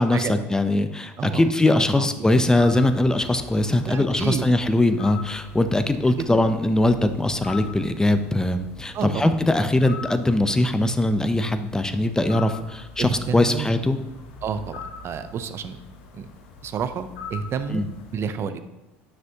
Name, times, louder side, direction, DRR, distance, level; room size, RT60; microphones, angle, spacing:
voice 1, 0.0-14.0 17.7-17.8, left 1 dB, 10° left, 9 dB, 0.7 m, -21 dB
voice 2, 1.2-2.1 3.9-4.5 6.1-6.4 8.9-9.7 13.0-13.7 14.4-15.8 16.1-16.3 16.6-17.8 18.1-18.6, right 7 dB, 45° right, 10 dB, 0.7 m, -30 dB
sound 1, 2.6-18.3, left 4 dB, 80° left, 1.2 m, -42 dB
9.7 x 6.1 x 2.9 m, 1.0 s
hypercardioid pair, 80°, 6 cm